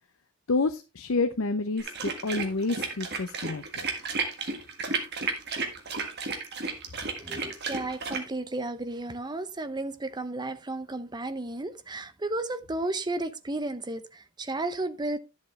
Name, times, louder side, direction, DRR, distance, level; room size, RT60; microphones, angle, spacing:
voice 1, 0.5-3.8, left 3 dB, 65° left, 0.6 m, -29 dB
sound 1, 1.8-8.2, right 4 dB, 50° right, 1.7 m, -32 dB
voice 2, 7.2-15.2, right 2 dB, 20° right, 0.7 m, -33 dB
11.0 x 7.3 x 3.2 m
head